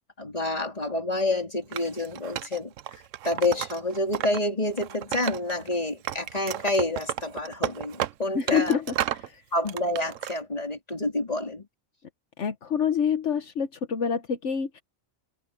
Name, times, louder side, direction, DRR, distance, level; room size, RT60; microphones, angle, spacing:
voice 1, 0.2-8.8 9.5-11.7, left 2 dB, 30° left, 3.7 m, -28 dB
Wood, 1.7-4.4 4.7-5.7 6.0-9.3 9.7-10.3, right 12 dB, 85° right, 1.0 m, -33 dB
voice 2, 8.3-9.4 12.4-14.8, left 7 dB, 70° left, 1.4 m, -27 dB
omnidirectional pair, 1.3 m